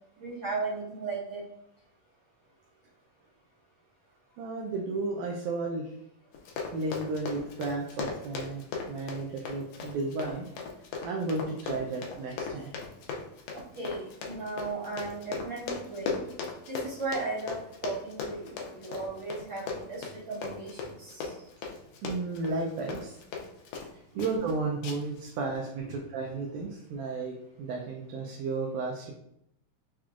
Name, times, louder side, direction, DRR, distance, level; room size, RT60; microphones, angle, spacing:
voice 1, 0.2-1.4 13.5-16.2 16.7-21.3 24.1-24.2, right 3 dB, 50° right, -10 dB, 1.5 m, -36 dB
voice 2, 4.4-5.9 6.7-10.5 11.0-12.7 21.6-21.8 22.0-23.2 23.9-29.1, right 3 dB, 80° right, 0 dB, 1.8 m, -33 dB
Run, 6.3-23.9 24.2-24.5 24.8-25.2 25.5-25.6, left 4 dB, 90° left, 1.5 m, -38 dB
5.7 x 2.3 x 2.4 m, 0.77 s
omnidirectional pair, 3.7 m